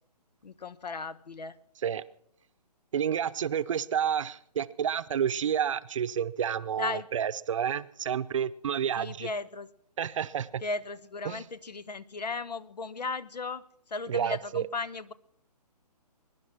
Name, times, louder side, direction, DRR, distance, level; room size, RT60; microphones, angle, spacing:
voice 1, 0.4-1.6 6.8-7.1 8.9-9.7 10.6-15.1, left 3 dB, 80° left, 1.1 m, -36 dB
voice 2, 2.9-9.3 10.0-10.6 11.3-11.4 14.1-14.6, right 8 dB, 50° right, 0.7 m, -30 dB
21.5 x 10.5 x 5.8 m
hypercardioid pair, 145°, 21 cm